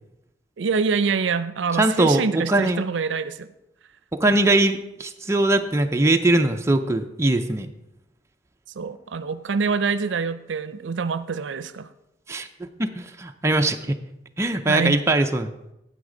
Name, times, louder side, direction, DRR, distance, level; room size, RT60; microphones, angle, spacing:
voice 1, 0.6-3.5 8.8-11.9 14.7-15.0, right 5 dB, 90° right, 13 dB, 0.5 m, -25 dB
voice 2, 1.7-2.8 4.2-7.7 12.3-14.0 14.4-15.5, right 2 dB, 15° right, 5 dB, 0.5 m, -21 dB
9.5 x 8.0 x 3.8 m, 0.88 s
head